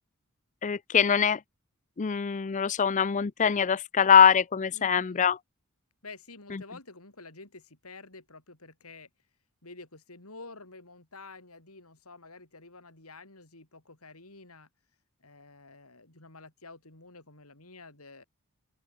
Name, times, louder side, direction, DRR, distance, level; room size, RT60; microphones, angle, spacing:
voice 1, 0.6-1.4 2.0-5.4, left 7 dB, 35° left, 0.5 m, -23 dB
voice 2, 4.7-5.3 6.0-9.1 9.6-14.7 15.2-18.2, left 3 dB, 80° left, 6.1 m, -49 dB
open air
head